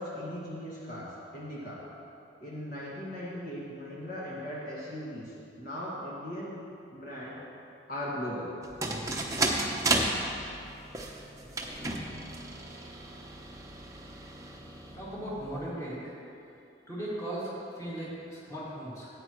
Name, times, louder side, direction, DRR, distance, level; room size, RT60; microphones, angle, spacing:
voice 1, 0.0-1.8 2.4-6.6 6.9-7.4 7.9-8.5, equal, 50° left, -7 dB, 1.9 m, -38 dB
sound 1, 8.6-15.7, right 2 dB, 15° right, 0.8 m, -33 dB
voice 2, 14.9-16.0 16.9-19.1, right 1 dB, 15° left, -8 dB, 2.2 m, -37 dB
16.0 x 9.0 x 3.1 m, 2.7 s
head